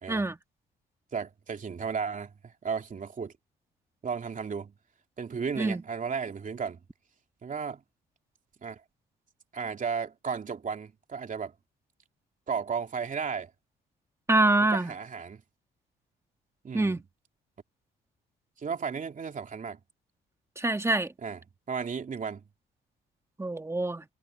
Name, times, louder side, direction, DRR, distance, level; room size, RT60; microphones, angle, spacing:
voice 1, 1.1-3.3 4.0-4.7 5.2-6.8 7.4-7.8 8.6-8.8 9.5-11.5 12.5-13.5 14.6-15.4 16.6-17.0 18.6-19.8 21.2-21.4 21.7-22.4, right 6 dB, 40° right, 3.0 m, -34 dB
voice 2, 14.3-14.9 16.7-17.0 20.6-21.1 23.4-24.0, right 2 dB, 15° right, 1.7 m, -25 dB
cardioid pair, 90°, 20 cm